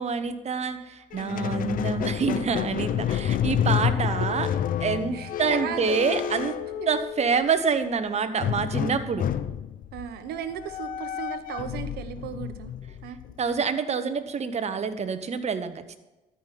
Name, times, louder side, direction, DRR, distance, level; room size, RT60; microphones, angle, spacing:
voice 1, 0.0-4.5 4.8-6.6 6.9-9.3 13.4-16.0, right 6 dB, 45° right, 10 dB, 1.0 m, -27 dB
Squeak, 1.1-7.5 8.4-13.6, left 9 dB, 60° left, 0.6 m, -29 dB
voice 2, 5.1-6.0 6.8-6.9 9.9-12.7 13.0-13.2, right 9 dB, 80° right, 11 dB, 0.9 m, -36 dB
13.0 x 5.3 x 5.8 m, 1.1 s
cardioid pair, 80°, 16 cm